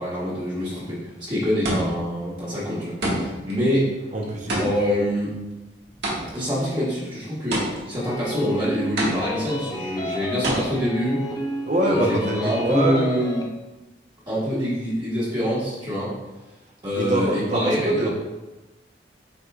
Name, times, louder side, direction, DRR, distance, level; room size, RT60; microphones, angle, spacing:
voice 1, 0.0-3.9 4.5-5.3 6.3-11.2 11.8-13.4 14.3-16.1 16.8-18.1, equal, 25° right, -9 dB, 1.6 m, -25 dB
sound 1, 0.8-1.0 1.6-2.2 3.0-3.5 4.5-6.5 7.5-8.1 9.0-9.6 10.4-10.6, right 1 dB, 70° right, 1.7 m, -27 dB
voice 2, 4.1-4.5 11.7-13.1 17.0-18.1, right 1 dB, 45° right, 1 dB, 0.9 m, -24 dB
sound 2, 8.0-13.5, left 1 dB, 20° left, 0.6 m, -31 dB
8.4 x 4.9 x 2.4 m, 1.1 s
head